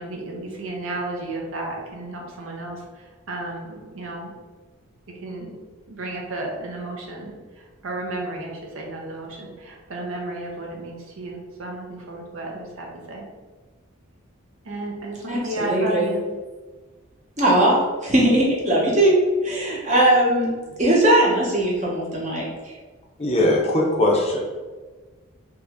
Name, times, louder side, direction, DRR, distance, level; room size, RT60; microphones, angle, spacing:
voice 1, 0.0-4.3 5.2-5.6 5.9-13.2 14.6-16.3, right 2 dB, 70° right, -1 dB, 0.7 m, -33 dB
voice 2, 15.3-16.1 17.4-20.5 20.8-22.5, right 1 dB, 35° right, -4 dB, 0.9 m, -19 dB
voice 3, 23.2-24.4, left 1 dB, 30° left, -2 dB, 0.5 m, -20 dB
2.9 x 2.7 x 3.5 m, 1.3 s
head